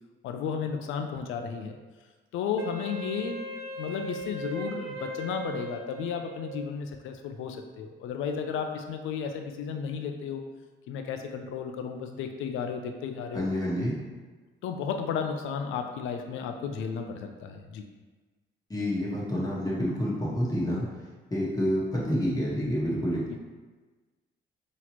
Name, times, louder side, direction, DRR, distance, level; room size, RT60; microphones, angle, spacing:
voice 1, 0.2-1.8 2.3-3.5 3.8-10.4 10.9-13.5 14.6-17.8 23.3-23.4, left 6 dB, 80° left, 5 dB, 0.4 m, -33 dB
Wind instrument woodwind instrument, 2.6-6.8, right 1 dB, 85° right, 0.5 m, -38 dB
voice 2, 13.3-13.9 18.7-20.9 21.3-23.4, equal, 20° left, -6 dB, 1.3 m, -28 dB
4.0 x 3.0 x 2.9 m, 1.3 s
cardioid pair, 90°, 20 cm